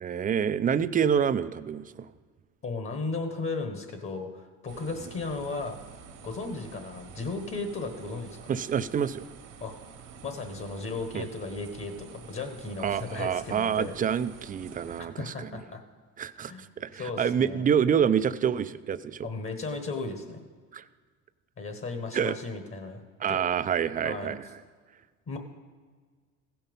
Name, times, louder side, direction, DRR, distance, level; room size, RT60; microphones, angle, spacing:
voice 1, 0.0-2.1 8.5-9.2 11.1-11.3 12.8-15.5 16.2-19.3 20.7-20.8 22.1-22.4 23.2-24.6, right 8 dB, 25° right, 14 dB, 0.4 m, -27 dB
voice 2, 2.6-5.8 6.2-8.4 9.6-9.7 10.2-13.9 15.0-15.8 16.4-16.7 16.9-17.7 19.2-20.4 21.6-23.0 23.3-23.4 24.0-24.3 25.3-25.4, left 3 dB, 40° left, 7 dB, 1.4 m, -35 dB
sound 1, 4.7-15.0, right 6 dB, 65° right, 1.3 m, -48 dB
15.5 x 5.8 x 5.3 m, 1.5 s
supercardioid pair, 90°, 33 cm